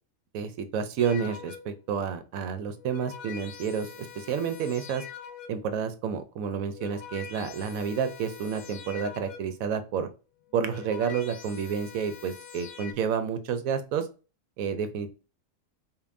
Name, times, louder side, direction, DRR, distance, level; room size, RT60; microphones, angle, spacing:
voice 1, 0.3-5.0 5.5-10.1 10.5-14.1 14.6-15.1, right 7 dB, 85° right, 10 dB, 1.1 m, -30 dB
sound 1, 1.0-1.9 2.6-5.8 6.5-9.7 10.4-12.9, left 8 dB, 70° left, 1.1 m, -45 dB
5.2 x 2.6 x 2.5 m, 0.33 s
omnidirectional pair, 1.4 m